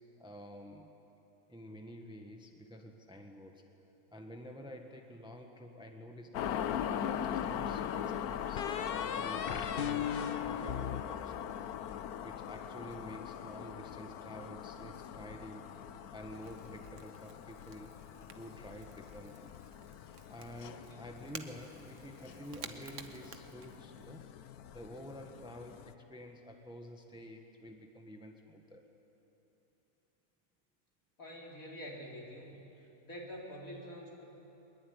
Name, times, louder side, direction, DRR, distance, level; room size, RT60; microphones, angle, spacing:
voice 1, 0.2-0.9 1.5-3.7 4.1-6.7 7.0-8.7 9.1-11.4 12.2-18.0 18.4-19.5 20.3-24.3 24.7-28.9, equal, 5° right, 3 dB, 1.4 m, -49 dB
sound 1, 6.3-25.9, left 9 dB, 80° left, 1.2 m, -42 dB
sound 2, 6.7-7.6 8.6-11.9, left 8 dB, 45° left, 0.9 m, -37 dB
Crackle / Crack, 15.1-24.2, right 5 dB, 55° right, 1.4 m, -54 dB
voice 2, 31.2-32.6 33.0-34.2, equal, 65° left, -2 dB, 4.3 m, -46 dB
22.0 x 21.5 x 9.6 m, 3.0 s
omnidirectional pair, 1.6 m